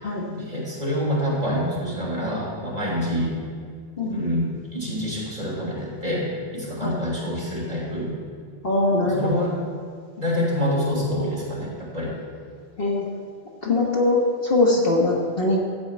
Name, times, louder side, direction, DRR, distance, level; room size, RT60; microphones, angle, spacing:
voice 1, 0.0-3.3 4.1-6.3 6.5-8.1 9.0-9.5 10.2-12.1, equal, 35° right, -6 dB, 3.6 m, -27 dB
voice 2, 8.6-9.4 12.8-13.0 13.6-15.6, left 2 dB, 50° left, -2 dB, 1.7 m, -21 dB
14.0 x 4.9 x 8.7 m, 2.1 s
omnidirectional pair, 1.2 m